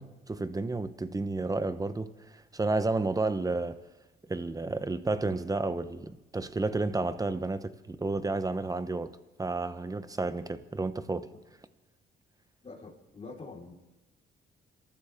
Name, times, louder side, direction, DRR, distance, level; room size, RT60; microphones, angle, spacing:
voice 1, 0.0-2.1 2.5-3.8 4.3-9.1 9.4-11.3, right 3 dB, 20° right, 1.0 m, -31 dB
voice 2, 12.6-13.7, left 3 dB, 30° left, 4.4 m, -45 dB
27.0 x 14.0 x 3.6 m
cardioid pair, 90°, 20 cm